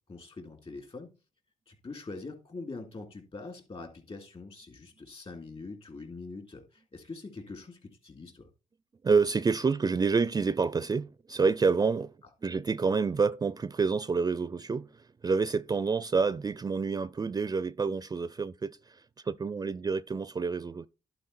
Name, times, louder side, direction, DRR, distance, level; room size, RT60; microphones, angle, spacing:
voice 1, 0.1-1.1 1.7-8.5, left 3 dB, 40° left, 3.3 m, -43 dB
voice 2, 9.0-20.9, right 5 dB, 25° right, 0.4 m, -28 dB
11.0 x 4.6 x 4.2 m
supercardioid pair, 60°, 14 cm